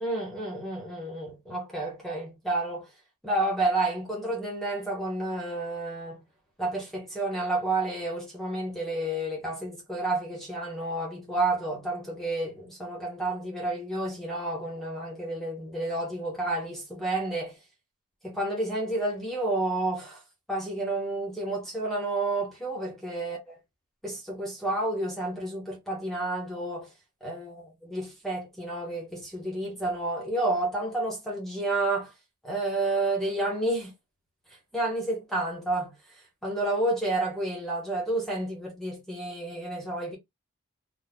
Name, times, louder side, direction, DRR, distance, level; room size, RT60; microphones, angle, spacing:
voice 1, 0.0-2.9 3.2-6.2 6.6-17.6 18.2-20.2 20.5-23.5 24.0-26.9 27.2-32.1 32.4-33.9 34.7-35.9 36.4-40.2, right 2 dB, ahead, 1.1 m, -30 dB
4.1 x 2.3 x 2.2 m
head